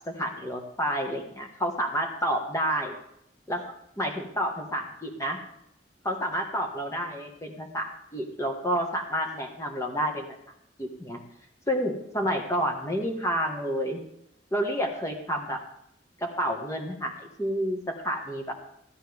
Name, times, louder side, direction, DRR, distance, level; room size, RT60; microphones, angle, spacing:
voice 1, 0.1-3.0 3.5-3.7 4.0-5.4 6.0-10.4 10.8-11.2 11.7-14.0 14.5-15.6 16.2-17.1 17.4-18.5, equal, 20° left, 2 dB, 1.7 m, -29 dB
16.0 x 11.5 x 3.6 m, 0.75 s
head